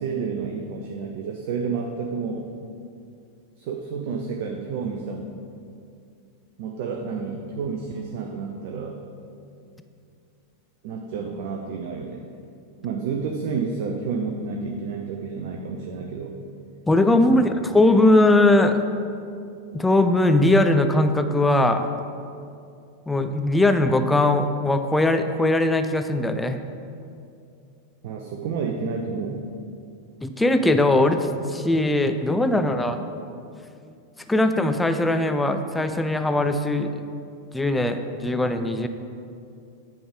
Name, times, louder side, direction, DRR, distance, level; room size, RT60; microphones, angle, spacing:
voice 1, 0.0-2.5 3.6-5.4 6.6-9.0 10.8-12.3 12.8-16.4 17.3-17.5 28.0-29.5, right 5 dB, 50° right, 2 dB, 0.5 m, -30 dB
voice 2, 16.9-17.5 17.7-18.8 19.7-21.9 23.1-26.6 30.2-33.0 34.3-36.9 37.5-38.9, left 2 dB, 5° left, 8 dB, 0.3 m, -20 dB
8.5 x 3.4 x 4.9 m, 2.5 s
figure-of-eight pair, 90°, 0 cm